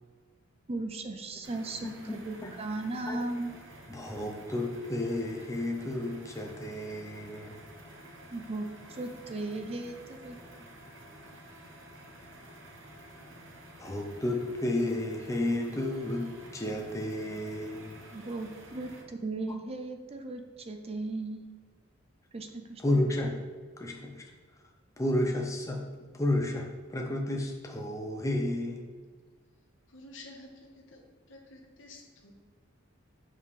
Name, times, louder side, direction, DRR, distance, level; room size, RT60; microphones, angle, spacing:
voice 1, 0.7-3.5 8.3-10.4 18.1-21.5 22.3-23.0, right 2 dB, 30° right, 5 dB, 0.5 m, -37 dB
sound 1, 1.4-19.0, right 1 dB, 65° right, 1.0 m, -51 dB
voice 2, 1.8-2.1 2.4-2.5 3.1-3.2 3.9-7.6 13.8-16.3 16.5-17.9 19.5-19.6 22.8-23.3 23.8-24.2 25.0-25.8 26.1-28.8, left 1 dB, 15° left, 1 dB, 0.6 m, -31 dB
voice 3, 29.9-32.3, left 2 dB, 70° left, 0 dB, 1.3 m, -51 dB
7.1 x 5.4 x 3.2 m, 1.5 s
head